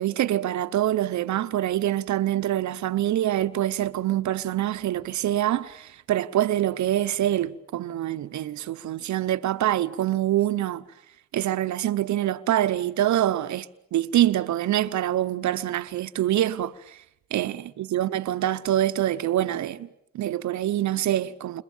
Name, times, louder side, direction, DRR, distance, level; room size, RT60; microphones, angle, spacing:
voice 1, 0.0-10.8 11.3-17.0 17.3-19.9 20.1-21.6, right 12 dB, 70° right, 1.0 m, -25 dB
29.5 x 26.5 x 7.3 m
cardioid pair, 90°, 30 cm